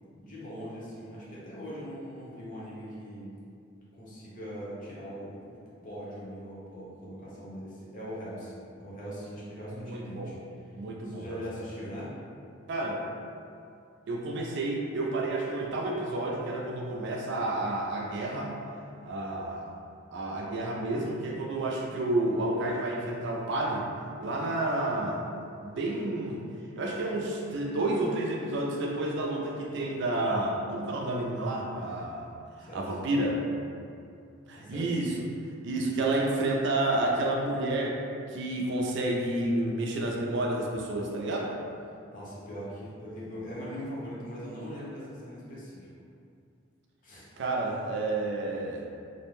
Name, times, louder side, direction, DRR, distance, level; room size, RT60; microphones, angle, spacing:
voice 1, 0.1-3.3 3.9-5.6 5.8-10.4 11.0-12.1 32.6-32.9 34.6-35.0 42.1-45.9 47.0-47.3, equal, 40° left, -7 dB, 0.7 m, -41 dB
voice 2, 9.7-10.3 10.7-11.2 12.7-13.0 14.1-18.5 19.0-19.7 20.1-23.9 24.2-26.5 26.8-32.3 32.6-33.4 34.5-35.3 35.6-38.0 38.3-41.5 47.4-48.9, right 2 dB, 60° right, -2 dB, 0.4 m, -30 dB
2.5 x 2.1 x 3.0 m, 2.4 s
head